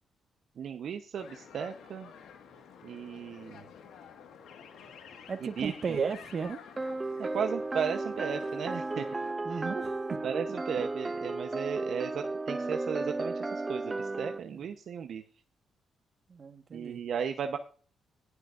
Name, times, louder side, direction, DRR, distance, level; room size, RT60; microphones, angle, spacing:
voice 1, 0.6-2.1 2.8-3.7 5.4-6.0 7.2-9.1 9.5-9.7 10.2-15.2 16.7-17.6, right 7 dB, 70° right, 6 dB, 0.9 m, -35 dB
sound 1, 1.2-9.3, left 7 dB, 85° left, 1.7 m, -51 dB
voice 2, 5.3-6.6 9.4-10.0 14.5-14.7 16.3-17.0, right 5 dB, 50° right, 8 dB, 1.5 m, -34 dB
sound 2, 6.8-14.4, right 2 dB, 25° right, 0.5 m, -34 dB
18.0 x 8.0 x 2.6 m, 0.39 s
cardioid pair, 80°, 0 cm